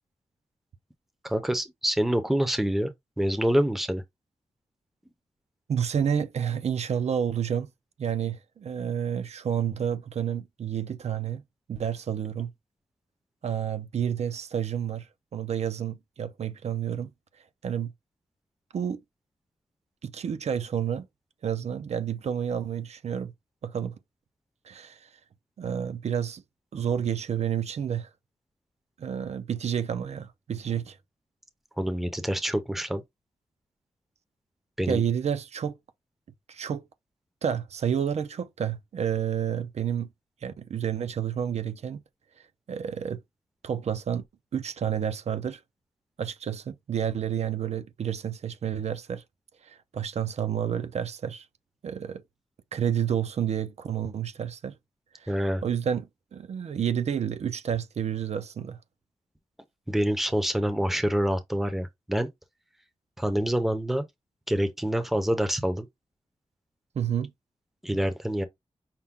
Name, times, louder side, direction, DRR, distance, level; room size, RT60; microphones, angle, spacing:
voice 1, 1.2-2.9 3.2-4.0 31.8-33.0 34.8-35.0 55.3-55.6 59.9-62.3 63.2-64.0 64.5-65.9 67.8-68.4, equal, ahead, 0.6 m, -26 dB
voice 2, 5.7-7.7 8.0-11.4 11.7-12.5 13.4-17.1 17.6-17.9 18.7-19.0 20.0-21.1 21.4-23.3 23.6-24.0 24.6-25.1 25.6-26.4 26.7-28.1 29.0-31.0 34.9-35.8 36.5-36.9 37.4-40.1 40.4-42.0 42.4-43.2 43.6-44.2 44.5-45.6 46.2-49.2 49.6-51.5 51.8-52.2 52.7-54.8 55.1-58.8 66.9-67.3, right 8 dB, 70° right, 0.6 m, -30 dB
5.7 x 2.2 x 3.6 m
wide cardioid pair, 175°, 11 cm